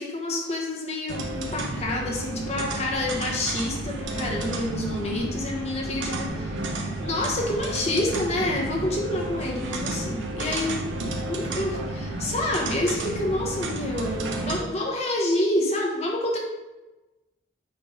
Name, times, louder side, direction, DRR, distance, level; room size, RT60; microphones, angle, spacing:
voice 1, 0.0-6.6 7.0-16.4, left 1 dB, 35° left, -1 dB, 1.3 m, -28 dB
sound 1, 1.1-14.6, right 2 dB, 85° right, 1.0 m, -31 dB
8.6 x 3.5 x 4.9 m, 1.1 s
head